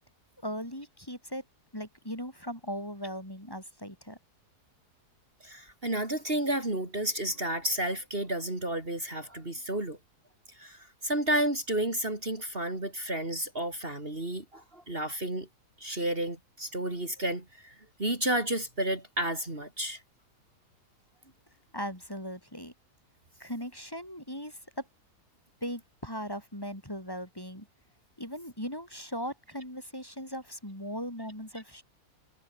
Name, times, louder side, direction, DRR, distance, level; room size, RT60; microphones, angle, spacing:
voice 1, 0.4-1.4 1.7-4.2 21.7-22.7 23.4-24.9 25.6-27.7 28.2-31.8, equal, 15° left, 5.6 m, -38 dB
voice 2, 5.4-10.0 10.6-15.5 15.8-20.0, right 1 dB, 35° right, 4.4 m, -31 dB
omnidirectional pair, 1.7 m